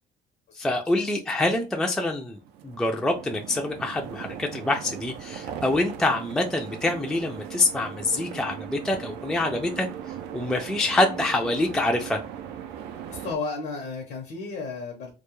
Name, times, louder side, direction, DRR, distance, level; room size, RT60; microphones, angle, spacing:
voice 1, 0.6-2.4 2.6-9.9 10.3-12.2, left 2 dB, 5° left, 0.3 m, -25 dB
sound 1, 2.4-13.4, right 9 dB, 85° right, 0.4 m, -39 dB
voice 2, 13.1-15.1, left 4 dB, 75° left, 0.7 m, -33 dB
2.2 x 2.0 x 3.0 m
cardioid pair, 110°, 17 cm